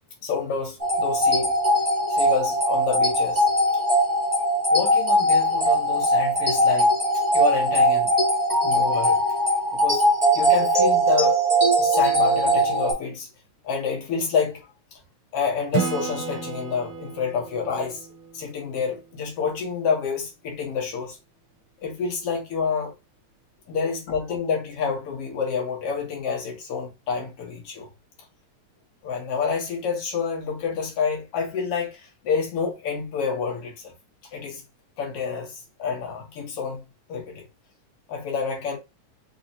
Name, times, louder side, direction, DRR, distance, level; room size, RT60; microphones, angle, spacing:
voice 1, 0.2-1.5 2.1-3.5 4.7-6.9 7.3-8.1 8.6-9.2 9.7-10.1 10.3-11.3 11.7-13.3 13.6-14.7 15.3-18.1 18.3-21.2 21.8-22.9 23.7-27.9 29.0-33.9 34.3-34.6 35.0-36.8 37.1-37.5 38.1-38.8, left 6 dB, 60° left, 1.8 m, -28 dB
sound 1, 0.8-12.9, right 1 dB, 20° right, 1.3 m, -20 dB
Acoustic guitar / Strum, 15.7-19.3, right 6 dB, 80° right, 1.2 m, -33 dB
5.1 x 2.7 x 2.6 m
omnidirectional pair, 3.5 m